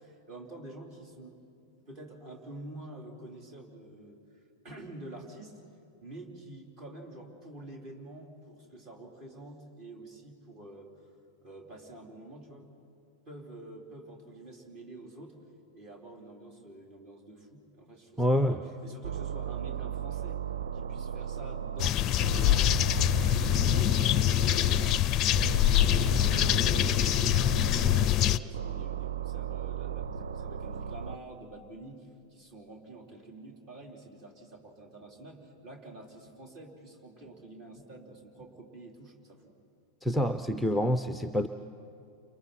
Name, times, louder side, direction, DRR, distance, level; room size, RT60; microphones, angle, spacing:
voice 1, 0.0-1.4 1.9-5.6 6.0-11.0 11.4-12.7 13.3-15.4 15.7-20.4 20.7-39.5, right 2 dB, 40° right, 0 dB, 4.4 m, -48 dB
voice 2, 18.2-18.6 40.0-41.5, equal, ahead, 9 dB, 0.7 m, -27 dB
sound 1, 19.0-21.9 22.2-25.0 25.3-28.1 28.5-31.2, right 9 dB, 65° right, 0.6 m, -36 dB
sound 2, 21.8-28.4, left 12 dB, 30° left, 0.5 m, -24 dB
30.0 x 28.0 x 4.6 m, 2.5 s
figure-of-eight pair, 90°, 0 cm